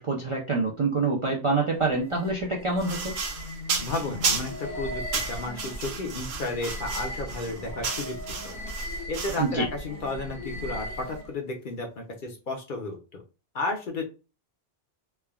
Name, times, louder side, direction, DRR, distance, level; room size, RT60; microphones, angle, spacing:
voice 1, 0.0-3.1 9.4-9.7, right 3 dB, 45° right, -1 dB, 0.4 m, -26 dB
sound 1, 1.7-11.4, left 1 dB, 75° left, 1.1 m, -38 dB
sound 2, 2.8-4.7 5.1-9.5, right 5 dB, 65° right, 0.9 m, -33 dB
voice 2, 3.8-8.2 8.4-8.5 9.1-13.2 13.5-14.0, left 2 dB, 55° left, 2 dB, 0.7 m, -33 dB
3.3 x 2.2 x 2.3 m, 0.30 s
omnidirectional pair, 1.2 m